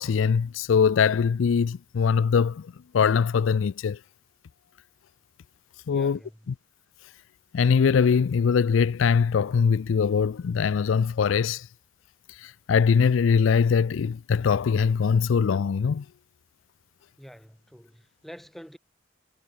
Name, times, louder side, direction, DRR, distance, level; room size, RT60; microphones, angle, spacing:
voice 1, 0.0-4.0 5.9-6.2 6.5-6.6 7.5-11.7 12.4-16.0, left 6 dB, 90° left, 0.4 m, -22 dB
voice 2, 5.9-6.5 17.2-18.8, equal, ahead, 4.5 m, -47 dB
head